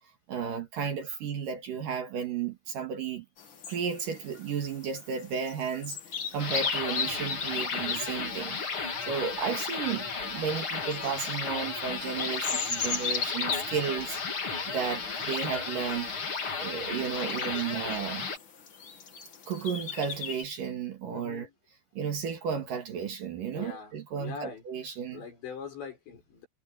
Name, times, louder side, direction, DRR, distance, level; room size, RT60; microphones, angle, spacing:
voice 1, 0.3-3.2 3.7-6.0 6.3-8.6 9.1-16.2 16.6-18.3 19.5-21.5 21.9-25.2, right 7 dB, 60° right, 3.0 m, -33 dB
sound 1, 3.4-20.4, left 6 dB, 50° left, 1.5 m, -38 dB
sound 2, 6.4-18.4, left 5 dB, 35° left, 2.9 m, -34 dB
voice 2, 21.1-21.5 23.5-24.6 25.1-26.5, left 6 dB, 75° left, 9.0 m, -43 dB
omnidirectional pair, 5.1 m